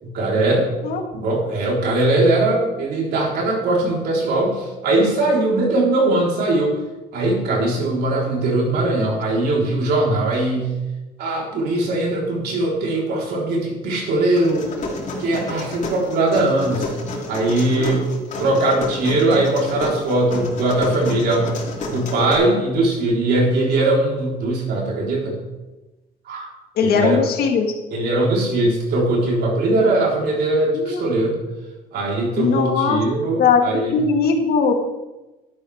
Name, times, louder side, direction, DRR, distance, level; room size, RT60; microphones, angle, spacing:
voice 1, 0.0-0.7 1.1-6.8 7.1-10.7 11.2-14.7 15.2-16.9 17.3-18.1 18.4-21.6 21.9-25.4 26.3-26.5 26.8-27.2 27.9-31.4 31.9-34.0, right 2 dB, 70° right, -2 dB, 4.0 m, -20 dB
sound 1, 14.4-22.4, left 2 dB, 45° left, 3.2 m, -30 dB
voice 2, 17.8-18.2 26.8-27.7 30.7-31.1 32.4-33.0 33.4-34.7, left 5 dB, 70° left, 4 dB, 1.7 m, -19 dB
12.0 x 10.5 x 3.5 m, 1.1 s
cardioid pair, 110°, 17 cm